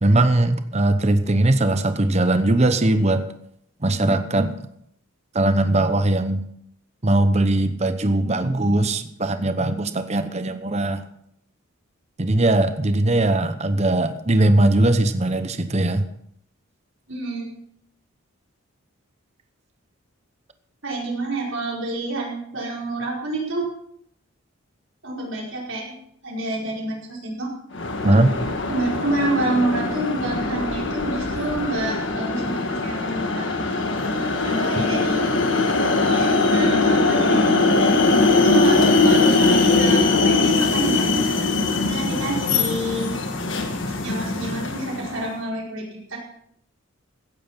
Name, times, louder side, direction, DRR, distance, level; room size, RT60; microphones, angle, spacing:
voice 1, 0.0-3.2 3.8-4.5 5.3-6.4 7.0-11.0 12.2-16.0 28.0-28.3, right 2 dB, 30° right, 10 dB, 0.8 m, -20 dB
voice 2, 17.1-17.5 20.8-23.7 25.0-26.0 26.2-27.5 28.7-33.6 34.4-35.2 35.5-35.7 36.1-37.6 38.2-41.2 41.8-43.2 43.9-46.2, right 2 dB, 65° right, -3 dB, 4.9 m, -28 dB
sound 1, 27.7-45.2, left 3 dB, 55° left, 1.7 m, -21 dB
16.0 x 9.1 x 5.8 m, 0.72 s
head